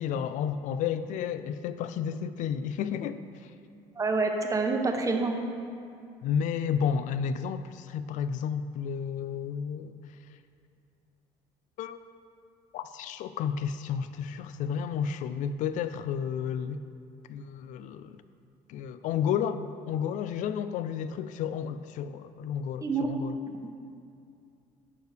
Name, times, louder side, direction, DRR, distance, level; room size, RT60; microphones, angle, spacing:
voice 1, 0.0-3.2 6.2-10.0 11.8-12.0 12.7-16.8 17.3-18.2 18.7-23.4, left 7 dB, 65° left, 11 dB, 0.4 m, -31 dB
voice 2, 4.0-5.4 22.8-23.1, right 3 dB, 25° right, 4 dB, 0.8 m, -27 dB
11.5 x 4.8 x 3.3 m, 2.5 s
supercardioid pair, 90°, 14 cm